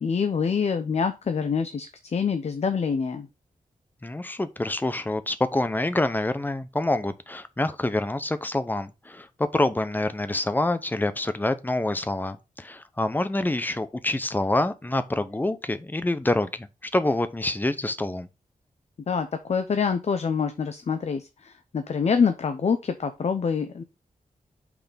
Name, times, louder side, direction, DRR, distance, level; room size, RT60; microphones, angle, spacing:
voice 1, 0.0-3.3 19.1-23.8, left 6 dB, 50° left, 0.7 m, -26 dB
voice 2, 4.0-18.3, left 2 dB, 15° left, 0.7 m, -26 dB
5.8 x 4.2 x 5.1 m
wide cardioid pair, 130°, 14 cm